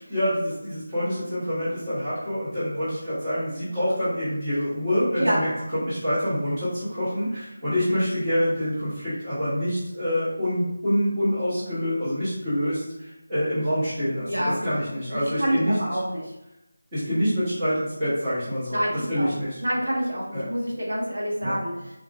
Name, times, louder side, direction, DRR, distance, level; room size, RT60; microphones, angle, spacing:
voice 1, 0.0-15.7 16.9-18.8 19.1-19.6 20.3-20.4 21.4-21.6, equal, 10° right, -14 dB, 1.1 m, -26 dB
voice 2, 14.2-14.7 15.1-16.3 18.7-19.3 19.6-21.7, equal, 80° right, -4 dB, 1.3 m, -27 dB
3.6 x 2.8 x 2.4 m, 0.89 s
figure-of-eight pair, 180°, 0 cm